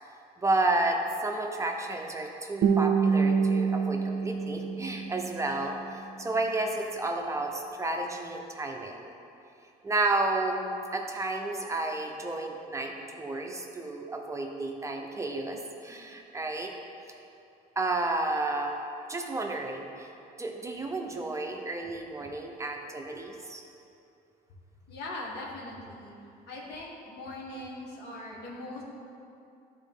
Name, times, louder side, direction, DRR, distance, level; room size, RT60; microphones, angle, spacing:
voice 1, 0.4-9.0 9.8-16.7 17.8-18.8 19.1-20.1 20.4-23.6, right 2 dB, 15° right, 2 dB, 0.6 m, -31 dB
Guitar, 2.6-5.6, right 6 dB, 55° right, 0.5 m, -26 dB
voice 2, 24.9-26.2 26.5-28.8, left 2 dB, 80° left, -3 dB, 1.6 m, -40 dB
11.0 x 4.2 x 3.6 m, 2.7 s
cardioid pair, 110°, 17 cm